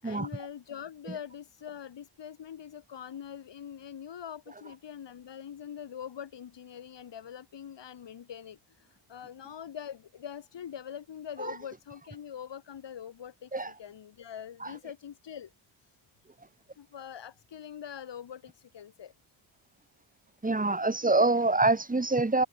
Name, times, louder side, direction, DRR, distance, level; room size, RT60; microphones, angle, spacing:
voice 1, 0.0-15.5 15.8-15.9 16.7-19.1, left 9 dB, 60° left, 6.5 m, -43 dB
voice 2, 20.4-22.5, right 2 dB, 15° right, 3.6 m, -25 dB
cardioid pair, 80°, 49 cm